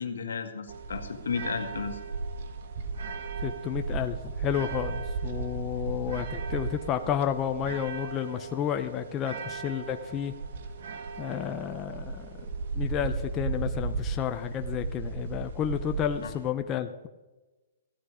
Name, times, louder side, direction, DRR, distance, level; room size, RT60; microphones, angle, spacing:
voice 1, 0.0-2.0 16.2-16.3, left 5 dB, 90° left, 5 dB, 1.8 m, -33 dB
sound 1, 0.7-16.5, right 4 dB, 60° right, 1.5 m, -35 dB
voice 2, 3.4-10.3 11.2-12.3 12.7-17.1, left 9 dB, 20° left, 7 dB, 0.7 m, -31 dB
15.0 x 10.5 x 5.0 m, 1.2 s
hypercardioid pair, 150°, 0 cm